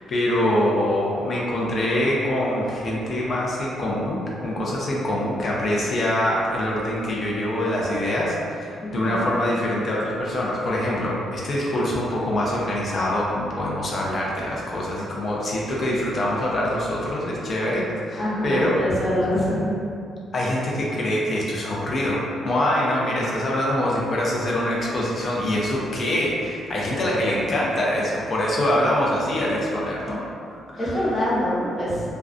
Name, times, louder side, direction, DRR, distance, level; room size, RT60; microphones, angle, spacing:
voice 1, 0.1-18.8 20.3-22.2 22.4-30.2 30.5-31.1, left 1 dB, 45° left, -4 dB, 0.5 m, -24 dB
voice 2, 8.8-9.3 18.1-19.7 27.0-27.2 30.8-32.0, equal, 20° left, -9 dB, 0.8 m, -25 dB
2.4 x 2.2 x 2.4 m, 2.4 s
cardioid pair, 90°, 0 cm